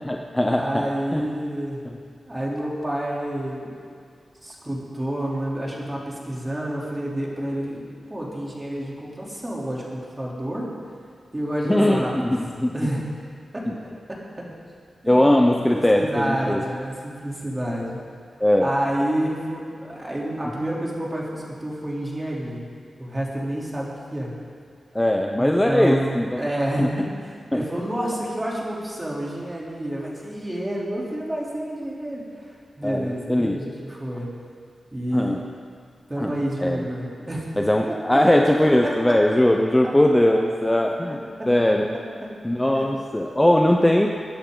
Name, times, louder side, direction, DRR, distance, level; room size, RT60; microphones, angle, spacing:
voice 1, 0.0-1.3 1.9-2.0 11.6-12.8 13.7-13.8 15.1-16.6 18.4-18.7 24.9-26.4 26.8-26.9 27.5-27.6 32.8-33.6 35.1-35.4 36.2-36.9 37.6-41.2 41.5-42.0 42.4-44.1, left 1 dB, 10° left, 2 dB, 0.9 m, -20 dB
voice 2, 0.5-1.8 2.3-3.7 4.4-7.8 8.1-10.7 11.3-12.3 12.7-13.1 13.5-14.5 15.0-15.2 15.7-18.0 18.6-22.6 23.0-24.4 25.4-34.3 34.9-35.4 36.1-37.5 37.9-38.2 38.6-39.2 41.4-41.5 42.2-42.3 42.8-42.9 43.7-43.9, right 1 dB, 20° right, -4 dB, 3.7 m, -29 dB
21.0 x 11.0 x 4.0 m, 2.2 s
cardioid pair, 75°, 0 cm